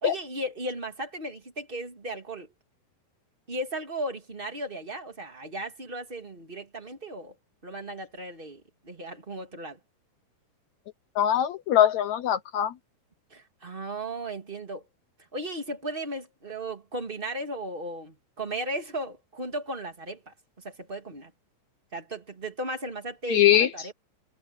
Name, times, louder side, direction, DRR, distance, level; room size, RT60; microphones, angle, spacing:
voice 1, 0.0-2.5 3.5-7.3 7.6-9.8 13.3-14.8 15.3-20.3 20.6-21.3 21.9-23.9, right 1 dB, 20° right, 2.0 m, -36 dB
voice 2, 11.2-12.7 23.3-23.7, left 11 dB, 70° left, 1.7 m, -21 dB
omnidirectional pair, 4.2 m